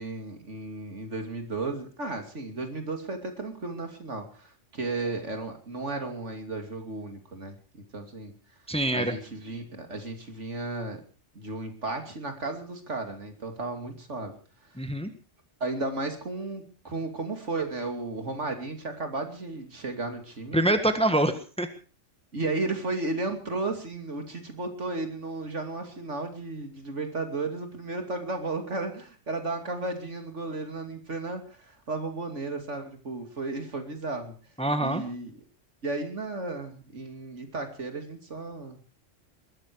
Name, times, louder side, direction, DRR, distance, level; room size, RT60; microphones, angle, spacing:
voice 1, 0.0-8.3 8.9-11.0 11.3-14.4 15.6-20.6 22.3-34.3 34.8-35.3 35.8-38.8, right 2 dB, 70° right, 5 dB, 3.1 m, -34 dB
voice 2, 8.7-9.1 14.8-15.1 20.5-21.7 34.6-35.0, right 1 dB, 5° left, 8 dB, 1.6 m, -25 dB
21.0 x 14.0 x 4.7 m, 0.37 s
omnidirectional pair, 1.3 m